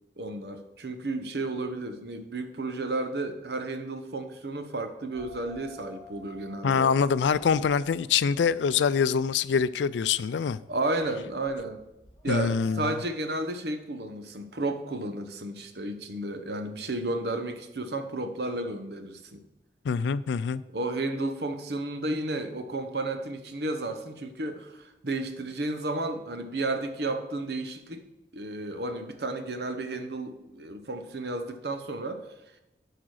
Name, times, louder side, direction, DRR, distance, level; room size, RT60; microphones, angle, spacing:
voice 1, 0.2-6.9 10.7-11.8 12.2-19.4 20.7-28.0 28.3-32.2, right 2 dB, 65° right, 0.9 m, -32 dB
sound 1, 5.1-12.9, right 2 dB, 20° left, 2.1 m, -52 dB
voice 2, 6.6-10.6 12.3-12.9 19.8-20.6, left 6 dB, 80° left, 0.4 m, -25 dB
8.6 x 5.0 x 6.4 m
head